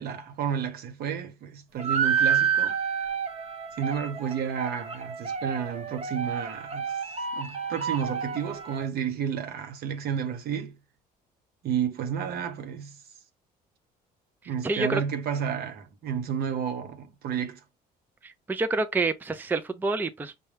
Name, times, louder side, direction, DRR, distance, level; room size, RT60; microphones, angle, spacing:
voice 1, 0.0-2.7 3.8-6.9 7.3-10.7 11.6-13.0 14.5-17.6, right 8 dB, 65° right, 0.9 m, -31 dB
sound 1, 1.8-8.9, right 7 dB, 40° right, 0.9 m, -29 dB
voice 2, 14.6-15.0 18.2-20.3, right 3 dB, 10° right, 0.4 m, -28 dB
5.3 x 2.2 x 3.2 m
cardioid pair, 110°, 17 cm